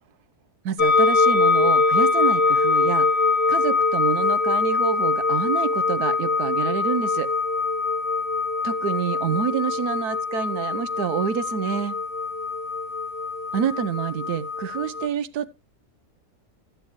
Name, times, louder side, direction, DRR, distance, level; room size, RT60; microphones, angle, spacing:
voice 1, 0.6-3.1 3.5-7.3 8.6-12.0 13.5-15.6, right 8 dB, 90° right, 1.4 m, -27 dB
sound 1, 0.8-15.1, left 4 dB, 50° left, 1.2 m, -23 dB
13.5 x 9.6 x 3.1 m
omnidirectional pair, 1.6 m